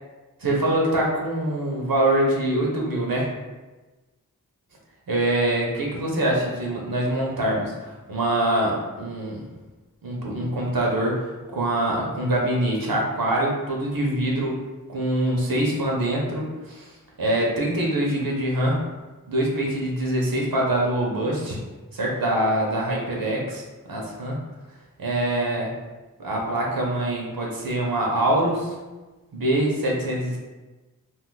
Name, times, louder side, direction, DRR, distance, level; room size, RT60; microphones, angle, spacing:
voice 1, 0.4-3.3 5.1-9.5 10.0-14.6 14.9-16.9 17.2-18.8 19.3-21.6 21.9-23.6 23.9-24.4 25.0-25.7 26.2-28.8 29.3-30.4, right 1 dB, 80° right, -2 dB, 0.7 m, -24 dB
2.5 x 2.3 x 3.9 m, 1.2 s
wide cardioid pair, 55°, 35 cm